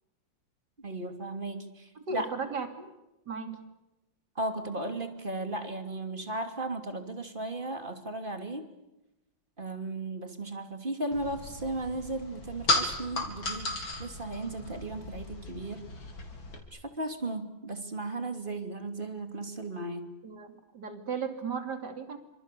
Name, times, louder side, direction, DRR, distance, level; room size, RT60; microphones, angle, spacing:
voice 1, 0.8-2.3 4.3-8.6 9.6-13.7 14.0-15.9 16.7-20.1, right 2 dB, 25° right, 7 dB, 3.0 m, -36 dB
voice 2, 2.1-2.9 3.3-3.6 20.2-22.2, right 5 dB, 55° right, 7 dB, 3.5 m, -35 dB
sound 1, 11.1-16.6, left 2 dB, 75° left, 4.7 m, -34 dB
28.5 x 26.0 x 6.9 m, 0.96 s
omnidirectional pair, 2.2 m